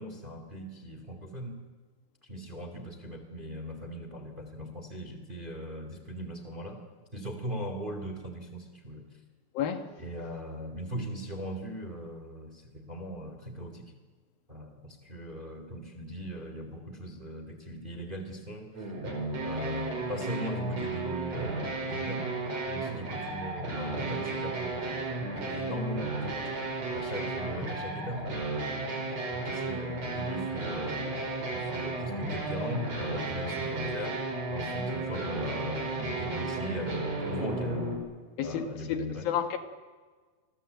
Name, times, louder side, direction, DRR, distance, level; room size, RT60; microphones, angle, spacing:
voice 1, 0.0-1.6 2.2-6.8 7.1-9.2 10.0-13.9 14.5-18.9 19.4-22.3 22.6-28.3 29.3-31.1 31.5-34.2 34.5-38.0 38.4-39.3, equal, 15° right, 2.1 m, -39 dB
voice 2, 9.6-9.9 38.4-39.6, left 8 dB, 75° left, 3.5 m, -31 dB
sound 1, 18.7-37.9, right 2 dB, 45° right, 6.1 m, -34 dB
28.0 x 21.5 x 8.1 m
omnidirectional pair, 4.2 m